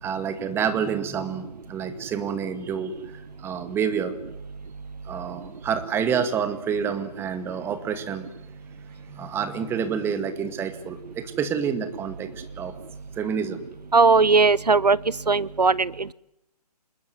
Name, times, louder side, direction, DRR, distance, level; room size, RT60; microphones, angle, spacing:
voice 1, 0.0-2.9 3.4-4.1 5.1-8.3 9.2-12.3 12.6-12.7 13.2-13.6, right 7 dB, 10° right, 10 dB, 2.0 m, -28 dB
voice 2, 13.9-15.0 15.3-16.1, right 4 dB, 80° right, 24 dB, 1.0 m, -18 dB
26.5 x 21.5 x 9.4 m, 0.87 s
figure-of-eight pair, 140°, 20 cm